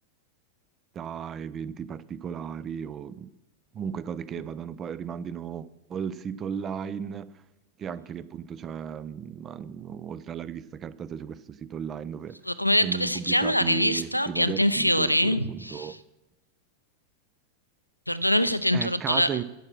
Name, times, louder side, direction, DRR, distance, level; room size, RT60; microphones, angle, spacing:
voice 1, 0.9-3.3 3.7-7.4 7.8-12.4 12.8-15.9 18.7-19.4, right 7 dB, 25° right, 17 dB, 0.5 m, -35 dB
voice 2, 12.5-16.0 18.1-19.3, left 1 dB, 90° left, 14 dB, 0.5 m, -24 dB
11.0 x 8.5 x 6.4 m, 1.0 s
figure-of-eight pair, 90°, 0 cm